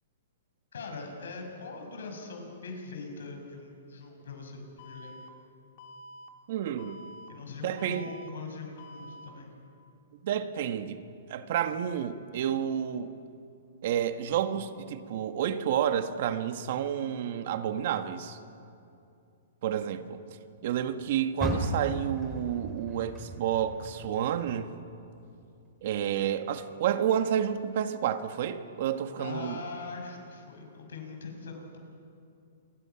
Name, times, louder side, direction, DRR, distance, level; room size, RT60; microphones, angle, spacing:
voice 1, 0.7-5.2 7.3-9.5 29.2-31.8, left 4 dB, 90° left, 3 dB, 6.2 m, -42 dB
Alarm, 4.8-5.3 5.8-6.3 6.8-7.3 7.8-8.3 8.8-9.3, equal, 45° left, 2.3 m, -48 dB
voice 2, 6.5-7.0 7.6-8.1 10.2-11.0 11.3-13.1 13.8-18.4 19.6-20.2 20.6-24.7 25.8-29.6, right 9 dB, 50° right, 9 dB, 1.4 m, -30 dB
Car, 21.3-24.6 25.0-26.4 26.9-27.0 27.6-27.7, equal, ahead, 3.4 m, -36 dB
28.5 x 24.0 x 5.9 m, 2.5 s
hypercardioid pair, 155°, 0 cm